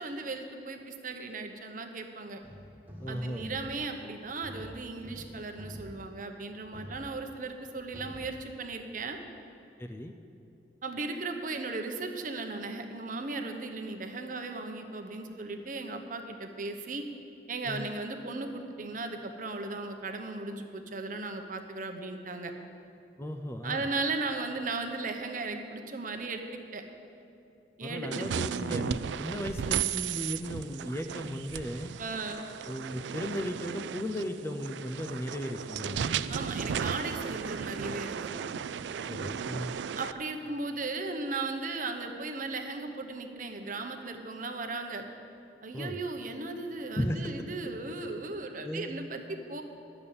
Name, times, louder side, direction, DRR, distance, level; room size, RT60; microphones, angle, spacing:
voice 1, 0.0-2.4 3.1-9.2 10.8-17.0 17.5-22.5 23.6-26.8 27.8-28.3 32.0-32.4 36.3-38.3 39.9-45.0 45.6-49.6, right 3 dB, 45° right, 5 dB, 0.9 m, -36 dB
sound 1, 2.4-7.7 7.9-9.0, equal, 10° right, 1.3 m, -47 dB
voice 2, 3.0-3.5 9.8-10.1 17.6-17.9 23.2-23.9 27.8-31.9 32.7-36.3 39.1-39.7 45.7-46.0 47.0-47.3 48.6-48.9, equal, 15° left, 6 dB, 0.4 m, -36 dB
sound 2, 28.1-40.1, right 7 dB, 75° right, 0.3 m, -35 dB
11.0 x 6.9 x 8.6 m, 2.7 s
head